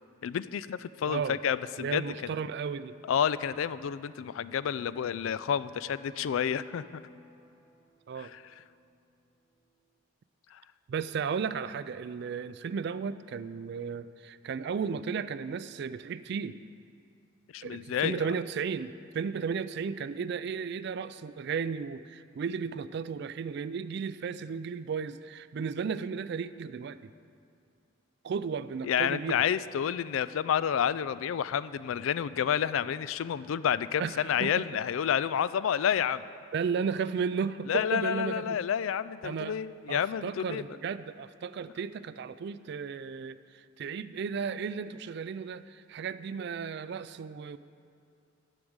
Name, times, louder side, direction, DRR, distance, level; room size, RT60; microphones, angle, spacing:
voice 1, 0.2-2.3 3.0-7.0 8.2-8.4 10.5-10.6 17.5-18.3 28.8-36.2 37.7-40.6, left 8 dB, 75° left, 15 dB, 0.3 m, -30 dB
voice 2, 1.1-1.4 1.8-3.0 8.1-8.3 10.9-16.6 17.6-27.1 28.2-29.4 34.0-34.7 36.5-38.6 39.2-39.6 39.9-47.6, right 6 dB, 55° right, 14 dB, 0.3 m, -34 dB
sound 1, 4.1-9.9, equal, 5° left, 2.9 m, -60 dB
13.0 x 4.9 x 8.0 m, 2.5 s
head